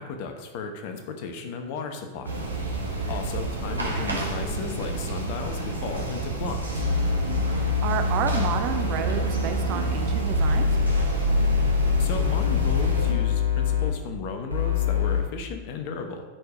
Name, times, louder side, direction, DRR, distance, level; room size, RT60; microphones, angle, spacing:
voice 1, 0.0-2.4 3.1-6.9 12.0-16.2, left 5 dB, 45° left, 6 dB, 1.1 m, -34 dB
sound 1, 2.2-13.1, right 2 dB, 80° right, 1.6 m, -30 dB
voice 2, 3.7-4.2 7.8-10.8, right 9 dB, 40° right, 6 dB, 0.9 m, -31 dB
sound 2, 6.8-13.9 14.5-15.2, left 4 dB, 85° left, 1.1 m, -24 dB
11.0 x 4.9 x 4.9 m, 1.3 s
figure-of-eight pair, 90°, 0 cm